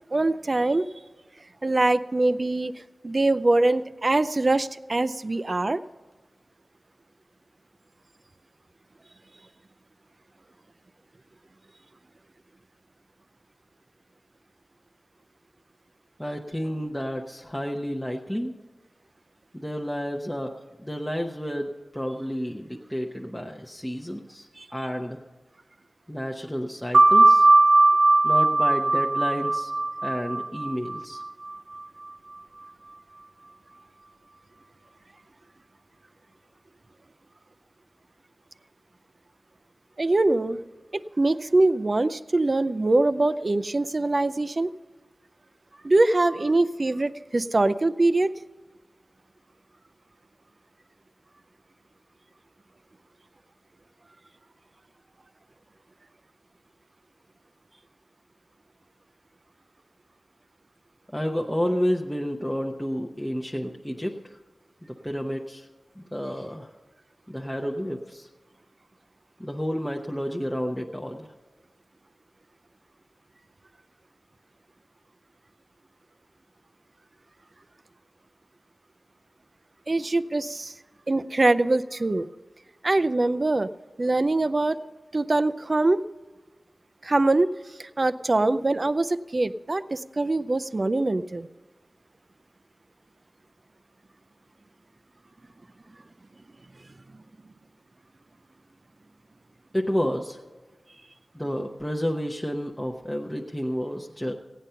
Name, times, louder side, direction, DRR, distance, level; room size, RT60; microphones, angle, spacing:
voice 1, 0.1-0.9 1.6-2.7 3.0-5.8 24.6-24.7 40.0-40.6 41.2-44.7 45.8-48.3 79.9-80.7 81.1-82.3 82.8-83.7 84.0-84.8 85.1-86.0 87.0-87.5 87.8-91.5, right 2 dB, 40° right, 13 dB, 0.4 m, -23 dB
voice 2, 16.2-18.5 19.5-20.5 20.8-25.2 26.1-27.5 28.2-29.7 30.0-31.2 61.1-64.1 64.8-65.7 66.0-66.7 67.3-68.3 69.4-71.3 99.7-100.4 101.3-104.3, equal, 5° left, 0 dB, 0.7 m, -30 dB
sound 1, 26.9-32.1, right 2 dB, 90° right, 1.0 m, -19 dB
16.0 x 9.1 x 5.6 m, 1.3 s
wide cardioid pair, 90°, 0 cm